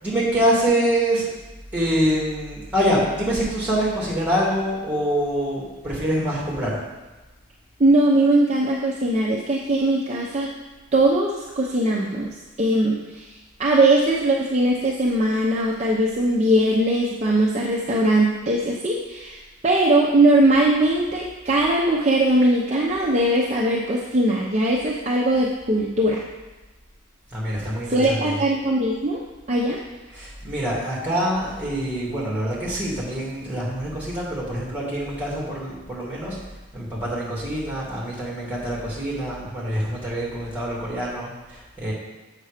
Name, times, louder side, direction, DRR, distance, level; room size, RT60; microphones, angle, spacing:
voice 1, 0.0-1.3 1.7-6.7 27.3-28.4 30.1-36.4 36.7-41.9, equal, 5° right, -6 dB, 2.6 m, -25 dB
voice 2, 7.8-10.5 10.9-13.2 13.6-26.2 27.9-29.2 29.5-29.8, right 1 dB, 30° right, -4 dB, 0.7 m, -20 dB
7.6 x 6.6 x 5.0 m, 1.2 s
head